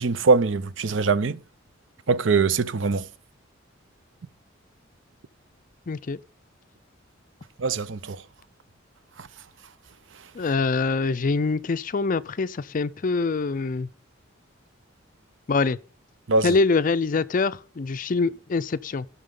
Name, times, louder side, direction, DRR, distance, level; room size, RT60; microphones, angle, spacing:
voice 1, 0.0-1.4 2.1-3.1 7.6-8.2 9.2-9.3 16.3-16.6, right 4 dB, 65° right, 0.6 m, -22 dB
voice 2, 5.9-6.2 10.3-13.9 15.5-15.8 16.4-19.1, left 4 dB, 40° left, 0.4 m, -24 dB
17.5 x 6.4 x 3.8 m
head